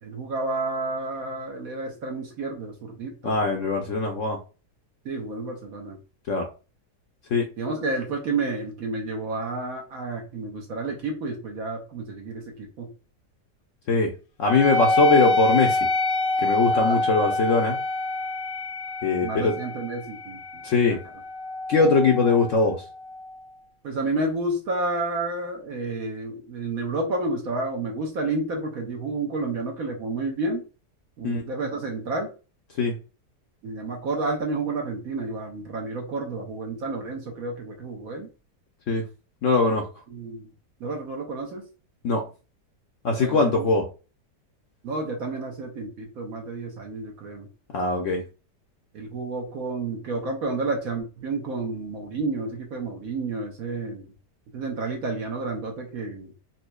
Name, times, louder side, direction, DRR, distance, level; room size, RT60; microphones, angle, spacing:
voice 1, 0.0-3.5 5.0-6.0 7.6-12.9 16.7-17.0 19.2-21.0 23.8-30.6 31.2-32.3 33.6-38.3 40.1-40.5 40.8-41.7 43.2-43.7 44.8-47.5 48.9-54.1 54.5-56.3, right 3 dB, 60° right, 1 dB, 1.2 m, -30 dB
voice 2, 3.2-4.4 6.3-6.5 7.3-7.5 13.9-14.1 14.4-15.8 16.4-17.8 19.0-19.5 20.6-21.0 21.7-22.8 31.2-31.4 32.8-33.0 38.9-39.0 39.4-39.9 42.0-42.2 43.0-43.8 47.7-48.2, left 3 dB, 65° left, 2 dB, 0.8 m, -21 dB
Wind instrument woodwind instrument, 14.5-23.4, left 2 dB, 85° left, 1.3 m, -26 dB
4.2 x 2.7 x 2.3 m, 0.33 s
omnidirectional pair, 1.8 m